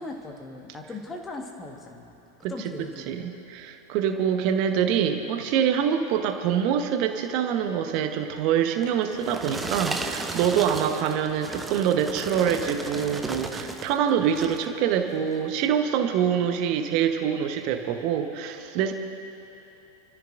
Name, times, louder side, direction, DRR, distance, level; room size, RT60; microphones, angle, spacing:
voice 1, 0.0-2.2 2.5-3.3, left 2 dB, 15° left, 2 dB, 1.5 m, -39 dB
voice 2, 3.1-18.9, right 8 dB, 45° right, 6 dB, 1.1 m, -25 dB
sound 1, 8.8-14.0 14.3-14.7 15.3-15.4, right 3 dB, 10° right, 0.8 m, -35 dB
29.0 x 13.5 x 2.6 m, 2.8 s
figure-of-eight pair, 90°, 0 cm